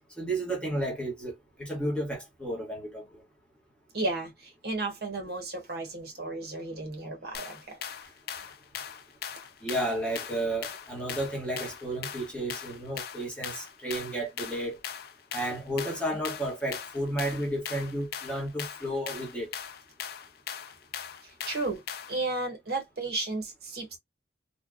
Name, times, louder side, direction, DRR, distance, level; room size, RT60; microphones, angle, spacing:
voice 1, 0.2-3.2 9.6-14.8 15.3-19.5, right 1 dB, 5° left, 1.0 m, -32 dB
voice 2, 3.9-7.8 21.5-21.8 22.1-24.0, right 2 dB, 55° right, 1.1 m, -33 dB
sound 1, 7.3-22.3, left 8 dB, 55° left, 0.4 m, -40 dB
3.3 x 2.2 x 2.3 m
head